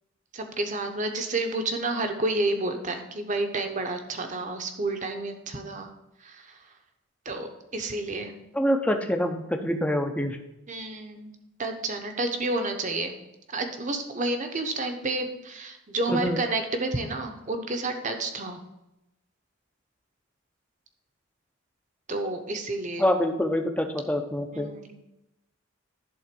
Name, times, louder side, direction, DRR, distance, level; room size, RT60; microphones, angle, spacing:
voice 1, 0.3-5.9 6.2-6.4 7.2-7.5 7.7-8.3 10.7-13.1 13.5-18.6 22.1-23.1 24.5-25.0, right 2 dB, 35° right, 5 dB, 0.9 m, -30 dB
voice 2, 8.5-10.4 16.1-16.4 23.0-24.7, equal, 5° left, 4 dB, 0.7 m, -26 dB
11.0 x 3.9 x 5.2 m, 0.90 s
head